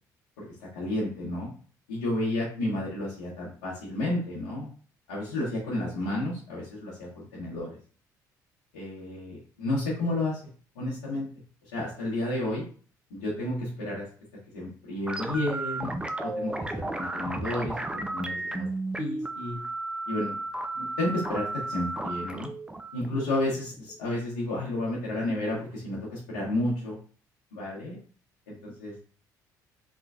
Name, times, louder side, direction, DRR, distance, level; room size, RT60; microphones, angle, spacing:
voice 1, 0.4-1.5 1.9-4.7 5.1-7.7 8.7-10.4 10.7-11.3 11.7-12.6 13.1-14.1 14.5-15.9 16.2-18.7 19.0-19.6 20.1-20.4 20.7-22.5 22.9-27.0 27.5-28.0 28.5-28.9, left 1 dB, 80° left, -7 dB, 1.1 m, -31 dB
sound 1, 15.1-24.0, right 2 dB, 10° right, 0.5 m, -34 dB
3.5 x 3.0 x 2.4 m, 0.41 s
hypercardioid pair, 55°, 9 cm